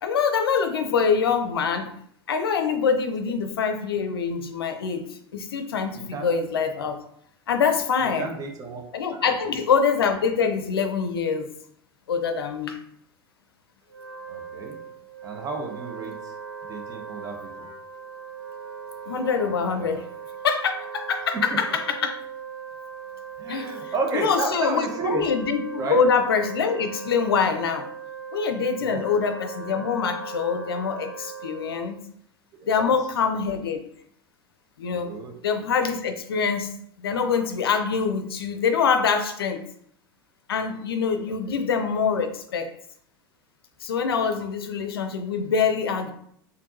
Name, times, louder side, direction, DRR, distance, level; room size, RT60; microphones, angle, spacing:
voice 1, 0.0-1.9 2.3-7.0 7.5-8.3 8.9-11.5 12.1-12.8 19.1-20.0 20.4-22.2 23.5-23.7 24.1-27.9 28.3-32.0 32.6-33.8 34.8-35.1 35.4-39.6 40.5-42.7 43.8-46.1, left 6 dB, 75° left, 7 dB, 0.5 m, -24 dB
voice 2, 5.9-6.3 8.0-8.8 9.2-9.6 14.3-14.8 15.2-16.3 16.7-17.7 19.7-20.0 21.3-21.6 23.4-25.2 25.8-26.0 28.8-29.0 32.5-32.9 34.9-35.3 41.3-41.6, right 4 dB, 30° right, 2 dB, 0.9 m, -32 dB
Wind instrument woodwind instrument, 13.8-32.0, right 6 dB, 90° right, 1.0 m, -38 dB
4.4 x 2.7 x 2.6 m, 0.68 s
figure-of-eight pair, 85°, 13 cm